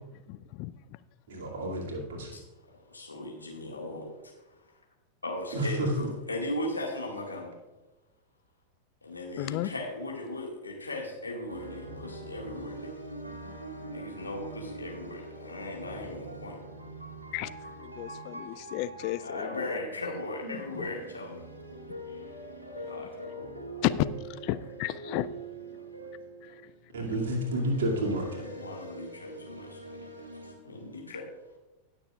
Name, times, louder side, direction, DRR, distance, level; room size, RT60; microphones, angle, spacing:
voice 1, 0.3-1.0 9.4-9.7 17.3-19.8 23.8-25.3 26.4-26.7, left 16 dB, 45° left, 15 dB, 0.4 m, -33 dB
voice 2, 1.3-2.3 5.5-6.1 20.4-20.8 22.6-22.8 23.1-23.8 25.7-25.8 26.5-26.6 26.9-28.4, right 1 dB, 60° right, -1 dB, 2.3 m, -32 dB
voice 3, 2.7-4.3 5.2-7.5 9.0-12.9 13.9-16.6 19.1-21.3 22.1-22.2 22.8-23.4 28.3-30.0 30.6-31.3, left 1 dB, 80° left, 0 dB, 1.9 m, -38 dB
sound 1, 11.5-30.5, right 2 dB, 85° right, 1.8 m, -43 dB
19.0 x 6.8 x 2.4 m, 1.1 s
figure-of-eight pair, 90°, 0 cm